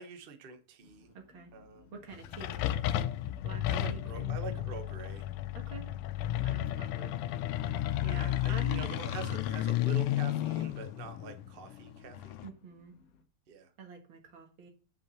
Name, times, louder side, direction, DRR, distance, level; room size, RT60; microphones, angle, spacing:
voice 1, 0.0-1.1 1.5-1.9 3.7-5.3 8.1-12.4 13.5-13.7, right 6 dB, 45° right, 6 dB, 0.7 m, -45 dB
sound 1, 0.8-13.2, left 3 dB, 60° left, 1.0 m, -56 dB
voice 2, 1.1-1.5 1.9-2.9 3.4-4.4 5.5-5.9 6.4-7.1 8.0-8.9 12.4-12.9 13.8-14.7, right 5 dB, 70° right, 3 dB, 2.3 m, -47 dB
sound 2, 2.1-12.5, left 13 dB, 90° left, 1.5 m, -33 dB
5.8 x 5.3 x 6.9 m, 0.37 s
omnidirectional pair, 2.4 m